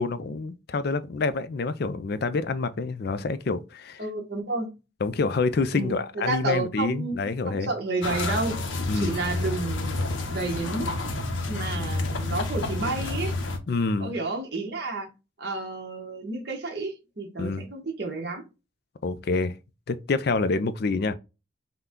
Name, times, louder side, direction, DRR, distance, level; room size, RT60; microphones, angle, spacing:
voice 1, 0.0-4.0 5.0-7.7 8.9-9.2 13.7-14.1 17.4-17.7 19.0-19.5 19.9-21.1, left 3 dB, 55° left, 0.4 m, -27 dB
voice 2, 4.0-4.7 5.7-7.2 7.5-8.6 8.9-10.0 10.3-10.9 11.5-13.3 14.0-15.1 15.4-18.4, right 3 dB, 55° right, 1.3 m, -31 dB
sound 1, 8.0-13.6, left 2 dB, 80° left, 0.9 m, -29 dB
5.7 x 2.2 x 3.7 m
head